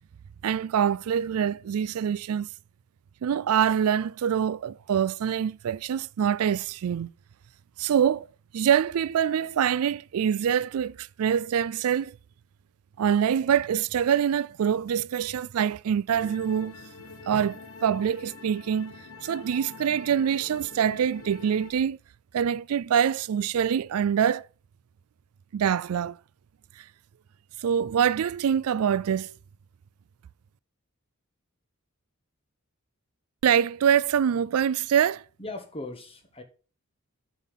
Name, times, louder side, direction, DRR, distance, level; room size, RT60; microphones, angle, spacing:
voice 1, 0.4-2.5 3.2-7.1 7.8-8.3 8.5-12.2 13.0-16.8 17.3-18.9 19.2-22.0 22.3-24.4 25.5-26.2 27.6-29.3 33.4-35.2, right 8 dB, 85° right, 0.4 m, -25 dB
sound 1, 16.1-21.7, left 3 dB, 80° left, 1.2 m, -45 dB
voice 2, 35.4-36.4, left 2 dB, 25° left, 1.6 m, -38 dB
8.2 x 5.7 x 5.3 m
head